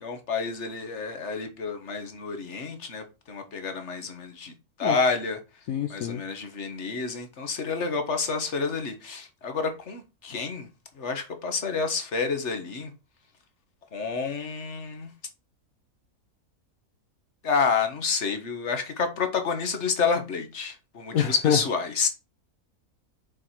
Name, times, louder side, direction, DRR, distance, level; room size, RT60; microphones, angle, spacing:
voice 1, 0.0-4.5 4.8-5.4 5.9-10.7 11.0-12.9 13.9-15.1 17.4-22.1, left 5 dB, 50° left, 1.6 m, -29 dB
voice 2, 5.7-6.2 21.1-21.6, left 9 dB, 70° left, 1.2 m, -25 dB
7.0 x 4.8 x 4.4 m
omnidirectional pair, 1.6 m